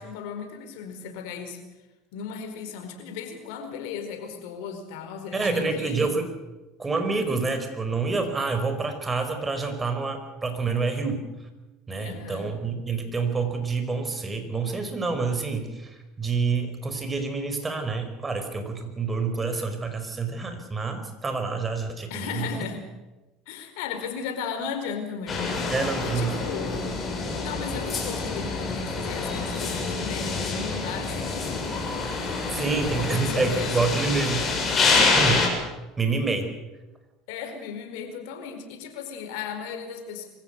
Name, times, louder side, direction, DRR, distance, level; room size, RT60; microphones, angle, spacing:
voice 1, 0.0-1.6 2.1-6.1 12.0-12.5 22.1-22.8 23.5-25.7 26.0-27.1 27.4-31.7 32.5-33.7 37.3-40.3, left 6 dB, 75° left, 6 dB, 4.6 m, -36 dB
voice 2, 5.3-6.3 6.8-11.2 11.9-22.6 25.7-26.4 32.5-34.5 34.9-35.4 36.0-36.5, right 4 dB, 20° right, 7 dB, 4.9 m, -27 dB
sound 1, 25.3-35.5, left 4 dB, 30° left, 7.2 m, -27 dB
24.5 x 15.5 x 8.2 m, 1.1 s
supercardioid pair, 95°, 0 cm